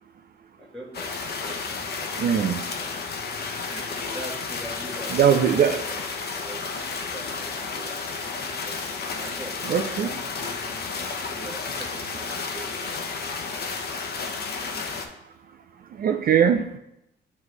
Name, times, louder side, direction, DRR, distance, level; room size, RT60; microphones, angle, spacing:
voice 1, 0.6-3.1 3.6-6.1 6.4-6.6 7.1-8.8 9.1-10.8 11.2-12.7, right 1 dB, ahead, -7 dB, 1.4 m, -42 dB
sound 1, 0.9-15.1, left 4 dB, 55° left, 0.9 m, -32 dB
voice 2, 2.2-2.6 5.1-5.8 9.6-10.1 16.0-16.8, right 8 dB, 50° right, 7 dB, 0.4 m, -21 dB
9.2 x 3.2 x 3.2 m, 0.83 s
cardioid pair, 90°, 20 cm